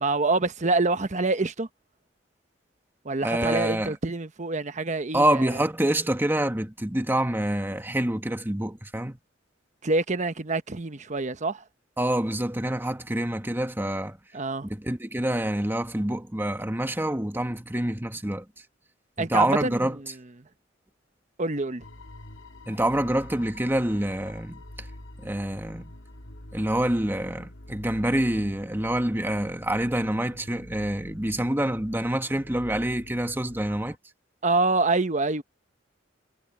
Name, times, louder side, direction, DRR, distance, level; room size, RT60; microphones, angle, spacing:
voice 1, 0.0-1.7 3.0-5.5 9.8-11.6 14.3-14.7 19.2-20.0 21.4-21.8 34.4-35.4, right 3 dB, 40° right, 1.0 m, -26 dB
voice 2, 3.2-3.9 5.1-9.2 12.0-14.2 14.6-18.4 19.2-20.0 22.7-24.6 25.2-25.8 26.5-34.0, right 1 dB, 10° right, 1.6 m, -26 dB
sound 1, 21.8-34.0, left 1 dB, 85° left, 2.9 m, -46 dB
head